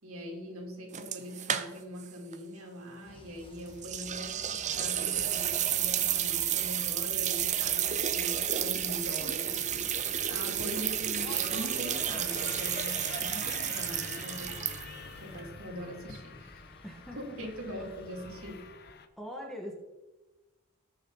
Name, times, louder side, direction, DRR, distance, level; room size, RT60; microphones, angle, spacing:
voice 1, 0.0-14.7 15.2-16.6 17.1-18.7, equal, 70° right, 0 dB, 3.4 m, -42 dB
sound 1, 0.9-2.1 2.3-2.4 3.8-15.1, right 10 dB, 30° right, 0.6 m, -31 dB
sound 2, 3.0-18.5, left 1 dB, 25° left, 1.1 m, -51 dB
sound 3, 4.7-19.1, left 5 dB, 45° left, 0.9 m, -48 dB
voice 2, 16.8-17.4 19.2-19.7, left 1 dB, ahead, -1 dB, 1.8 m, -41 dB
19.5 x 6.8 x 4.1 m, 1.1 s
head